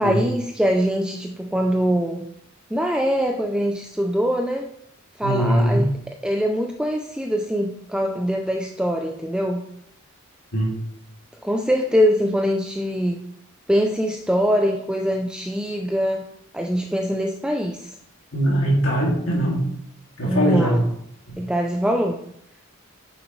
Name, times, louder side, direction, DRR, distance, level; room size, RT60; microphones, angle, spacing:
voice 1, 0.0-2.3 2.7-4.7 5.2-5.9 6.2-9.6 11.4-13.2 13.7-16.2 16.5-18.0 20.2-20.8 21.4-22.2, equal, 5° right, 2 dB, 0.4 m, -23 dB
voice 2, 5.2-5.9 10.5-10.8 18.3-19.6 20.2-20.8 21.3-21.4, right 1 dB, 65° left, -3 dB, 2.4 m, -21 dB
8.9 x 7.0 x 3.1 m, 0.73 s
head